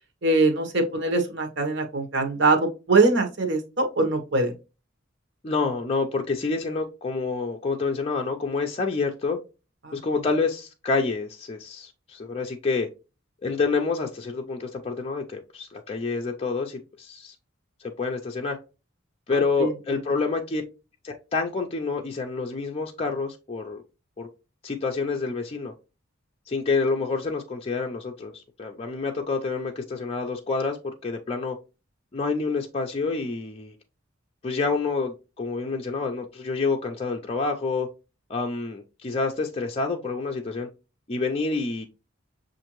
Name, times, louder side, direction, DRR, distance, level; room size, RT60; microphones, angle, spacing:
voice 1, 0.2-4.5 9.8-10.0 19.3-19.7, right 3 dB, 60° right, 1.0 m, -23 dB
voice 2, 5.4-9.4 9.9-12.9 13.4-17.3 17.8-18.6 19.3-20.6 21.0-23.8 24.2-24.3 24.6-25.7 26.5-31.6 32.1-33.7 34.4-37.9 38.3-40.7 41.1-41.9, left 4 dB, 30° left, 0.5 m, -28 dB
6.7 x 2.5 x 3.0 m
head